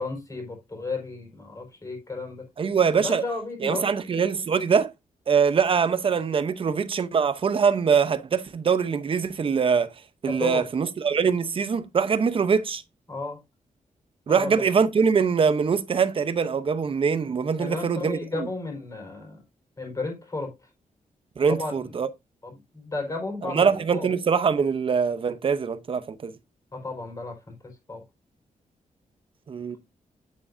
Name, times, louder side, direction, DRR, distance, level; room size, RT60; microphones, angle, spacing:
voice 1, 0.0-2.5 3.0-3.9 10.3-10.6 13.1-13.4 14.3-14.5 17.6-19.4 19.8-20.5 21.5-22.0 22.4-24.1 26.7-28.0, left 3 dB, 25° left, 4.8 m, -33 dB
voice 2, 2.6-3.2 3.6-4.9 5.3-9.9 10.2-12.8 14.3-18.5 21.4-22.1 23.4-26.3 29.5-29.8, right 6 dB, 40° right, 0.8 m, -23 dB
9.6 x 8.6 x 2.7 m
wide cardioid pair, 165°, 14 cm